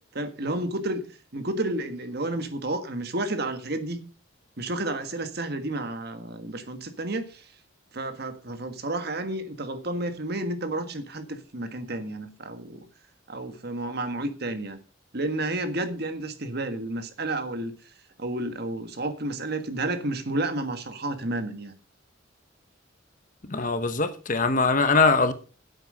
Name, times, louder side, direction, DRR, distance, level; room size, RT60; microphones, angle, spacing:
voice 1, 0.1-1.0 1.3-4.0 4.6-7.4 7.9-12.8 13.3-14.8 15.1-17.7 18.2-21.7, right 2 dB, 55° right, 1.5 m, -31 dB
voice 2, 23.5-25.3, left 4 dB, 40° left, 1.1 m, -22 dB
10.0 x 8.0 x 5.5 m
head